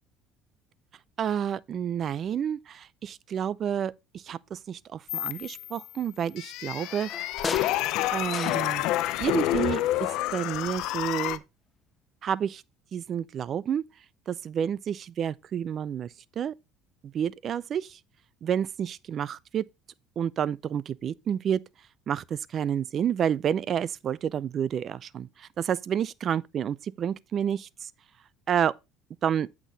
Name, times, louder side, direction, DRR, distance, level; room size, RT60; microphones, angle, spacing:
voice 1, 1.2-7.1 8.1-8.8 9.2-11.4 12.2-12.6 12.9-13.8 14.3-16.5 17.0-18.0 18.4-19.6 20.2-21.6 22.1-27.9 28.5-28.7 29.2-29.5, right 8 dB, 45° right, 0.4 m, -30 dB
sound 1, 5.1-5.9 6.4-11.4, left 15 dB, 70° left, 0.6 m, -29 dB
sound 2, 6.7-9.2 9.4-10.5 10.9-11.0, left 4 dB, 25° left, 0.7 m, -38 dB
8.3 x 6.0 x 3.9 m
cardioid pair, 120°, 0 cm